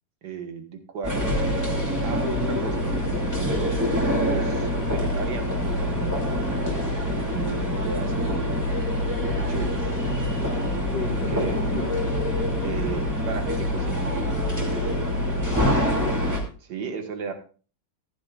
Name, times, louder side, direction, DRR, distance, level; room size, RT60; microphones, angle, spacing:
voice 1, 0.2-1.4 2.0-3.7 4.1-6.8 7.3-8.8 9.2-9.9 11.3-11.6 12.6-15.1 16.6-17.3, right 6 dB, 75° right, 6 dB, 2.0 m, -35 dB
sound 1, 1.0-16.4, left 1 dB, 10° right, 2.5 m, -25 dB
voice 2, 10.7-12.0 15.5-16.4, left 3 dB, 80° left, 4 dB, 2.4 m, -34 dB
14.5 x 11.5 x 2.4 m, 0.37 s
omnidirectional pair, 1.8 m